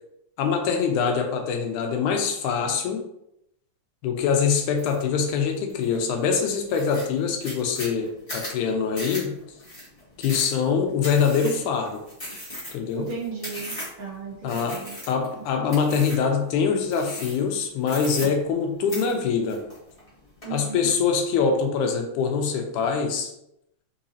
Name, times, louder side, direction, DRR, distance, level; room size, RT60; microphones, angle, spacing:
voice 1, 0.4-3.0 4.0-9.4 10.2-12.0 12.7-13.1 14.4-19.6 20.5-23.3, left 6 dB, 85° left, 4 dB, 2.1 m, -24 dB
sound 1, 4.8-5.0 5.5-6.0 6.3-6.4 6.7-14.1 14.5-15.3 15.7-16.3 16.9-17.5 17.8-18.6 18.9-20.1 20.4-20.9, left 1 dB, 20° left, 0.9 m, -37 dB
voice 2, 12.9-15.0 15.6-16.2 20.4-20.9, right 5 dB, 65° right, -3 dB, 1.7 m, -36 dB
4.8 x 4.1 x 2.7 m, 0.79 s
omnidirectional pair, 3.5 m